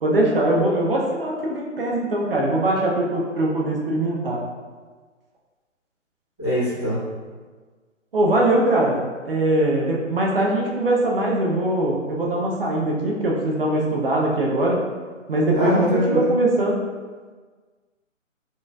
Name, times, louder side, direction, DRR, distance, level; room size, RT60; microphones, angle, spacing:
voice 1, 0.0-4.4 8.1-9.0 9.3-14.8 15.3-16.7, right 1 dB, 45° right, -2 dB, 0.7 m, -21 dB
voice 2, 6.4-7.0 15.5-16.3, equal, 5° right, -25 dB, 0.5 m, -22 dB
4.4 x 3.1 x 2.3 m, 1.4 s
figure-of-eight pair, 150°, 39 cm